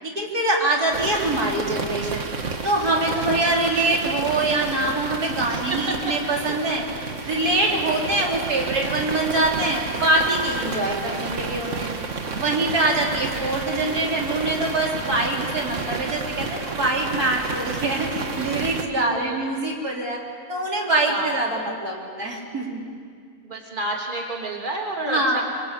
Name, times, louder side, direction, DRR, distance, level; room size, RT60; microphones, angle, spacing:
voice 1, 0.0-2.3 2.6-6.8 7.2-11.9 12.3-20.2 20.5-22.9 25.0-25.4, right 2 dB, 75° right, -2 dB, 4.4 m, -24 dB
sound 1, 0.9-18.9, right 4 dB, 50° right, 1.9 m, -31 dB
voice 2, 3.2-3.5 5.5-6.2 7.6-7.7 15.2-15.3 18.9-19.5 21.1-21.4 23.4-25.4, right 2 dB, 30° right, 0 dB, 3.3 m, -31 dB
27.0 x 25.5 x 8.4 m, 2.1 s
omnidirectional pair, 1.6 m